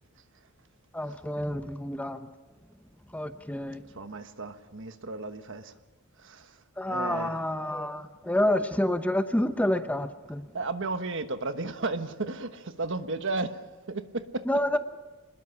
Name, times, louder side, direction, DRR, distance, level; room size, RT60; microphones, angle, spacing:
voice 1, 0.9-2.3 3.1-3.8 6.8-10.5 14.5-14.8, left 1 dB, 5° left, 9 dB, 0.8 m, -28 dB
voice 2, 3.9-5.7 6.2-6.6 6.9-7.3 10.5-13.6 13.9-14.4, right 3 dB, 60° right, 9 dB, 1.3 m, -33 dB
27.0 x 21.0 x 5.9 m, 1.3 s
head